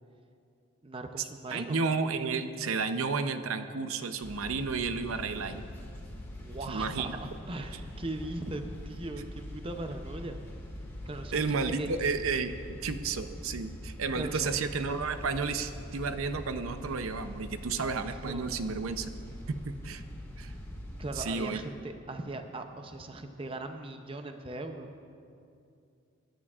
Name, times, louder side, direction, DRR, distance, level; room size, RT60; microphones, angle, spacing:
voice 1, 0.8-1.8 6.4-10.4 11.1-11.9 14.1-14.5 18.2-18.5 21.0-24.9, right 2 dB, 25° right, 6 dB, 0.6 m, -39 dB
voice 2, 1.5-5.7 6.7-7.2 11.3-19.1 19.5-20.0 20.4-20.5 21.2-21.6, right 4 dB, 85° right, 9 dB, 0.6 m, -32 dB
sound 1, 4.2-21.2, left 1 dB, 10° left, 1.9 m, -43 dB
24.5 x 11.0 x 2.4 m, 2.5 s
head